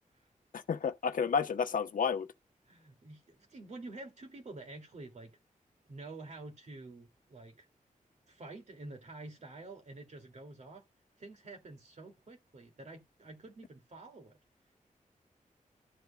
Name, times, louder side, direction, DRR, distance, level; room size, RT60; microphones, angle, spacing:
voice 1, 0.5-2.3, left 6 dB, 80° left, 0.9 m, -31 dB
voice 2, 2.7-5.3 5.8-7.7 8.3-10.8 11.2-14.4, right 2 dB, 55° right, 2.5 m, -48 dB
12.5 x 8.1 x 2.3 m
wide cardioid pair, 135°, 14 cm